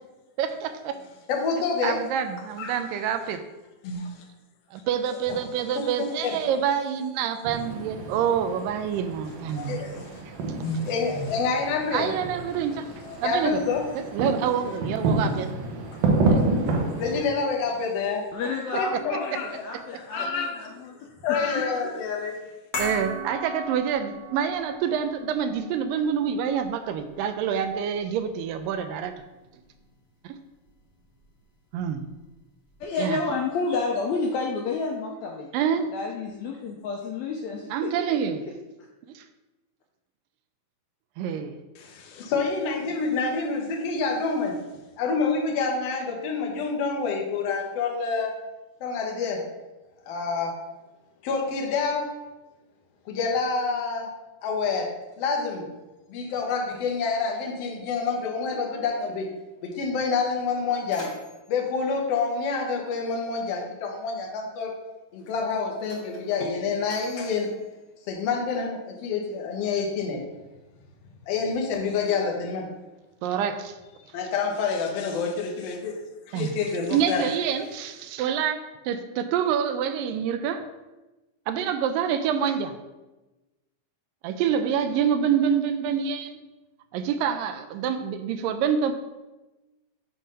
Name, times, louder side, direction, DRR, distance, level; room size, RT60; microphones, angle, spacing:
voice 1, 0.4-1.0 1.8-3.4 4.7-9.8 11.9-12.9 13.2-13.6 14.1-15.5 16.3-16.5 18.9-19.6 22.8-29.1 30.2-30.4 31.7-32.1 33.0-33.2 35.5-35.9 37.7-38.4 39.2-39.3 41.2-41.6 73.2-73.8 76.3-76.6 76.9-80.7 81.5-82.8 84.2-86.4 86.9-88.9, right 8 dB, 85° right, 9 dB, 2.2 m, -27 dB
voice 2, 1.3-2.0 2.6-2.8 3.8-4.2 5.1-5.4 5.7-5.9 6.2-6.4 9.5-10.2 10.6-12.2 13.0-13.9 17.0-18.3 18.7-19.6 19.9-20.7 21.2-22.4 41.8-44.6 45.0-48.4 48.8-49.5 50.1-50.6 51.2-52.2 53.1-54.1 54.4-55.7 56.1-59.3 59.6-61.1 61.5-64.7 65.1-67.6 68.1-70.2 71.3-72.7 74.1-76.0 76.3-77.3, left 4 dB, 65° left, 0 dB, 1.7 m, -28 dB
sound 1, 7.4-17.2, right 2 dB, 70° right, 1.8 m, -29 dB
voice 3, 18.3-21.0 21.5-21.7 32.8-35.5 35.9-38.5, left 4 dB, 90° left, 0 dB, 1.6 m, -30 dB
sound 2, 22.7-29.1 29.4-29.6, equal, 50° left, 1.4 m, -38 dB
Mechanisms, 60.4-63.1 64.1-64.3 65.1-68.7, left 2 dB, 35° left, 1.1 m, -49 dB
7.5 x 3.4 x 5.3 m, 1.1 s
omnidirectional pair, 3.9 m